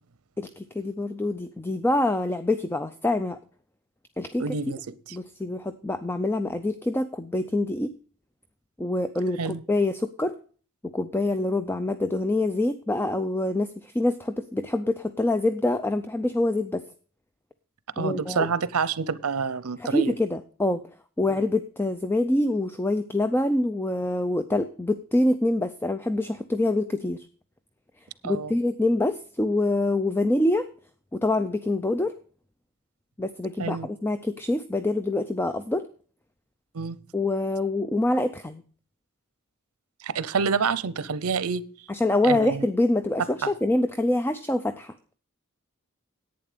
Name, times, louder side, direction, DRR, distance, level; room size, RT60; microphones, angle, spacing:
voice 1, 0.4-3.4 4.2-4.5 5.1-7.9 8.8-10.4 10.8-16.8 18.0-18.5 19.8-20.8 21.2-27.3 28.2-30.7 31.1-32.1 33.2-35.9 37.1-38.6 41.9-44.9, left 2 dB, 10° left, 0.4 m, -25 dB
voice 2, 4.4-4.8 5.1-5.2 9.4-9.6 18.0-20.1 21.3-21.4 28.2-28.5 33.6-33.9 36.7-37.0 40.0-41.6 42.2-42.6 43.4-43.5, right 5 dB, 85° right, 0.7 m, -27 dB
11.0 x 8.8 x 5.0 m
head